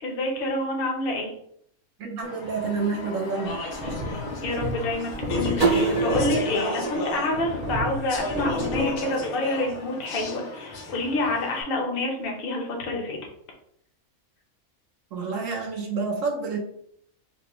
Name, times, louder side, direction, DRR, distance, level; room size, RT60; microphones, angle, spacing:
voice 1, 0.0-1.3 4.4-13.2, left 2 dB, 45° left, 1 dB, 0.9 m, -28 dB
voice 2, 2.0-3.6 15.1-16.6, right 4 dB, 65° right, 2 dB, 1.1 m, -28 dB
Speech / Chatter, 2.2-11.6, left 2 dB, 85° left, 1.3 m, -34 dB
sound 1, 3.7-6.4 7.3-8.9, equal, 35° right, 0.9 m, -31 dB
sound 2, 5.6-8.4, right 4 dB, 85° right, 2.2 m, -27 dB
5.0 x 2.1 x 3.0 m, 0.69 s
omnidirectional pair, 1.5 m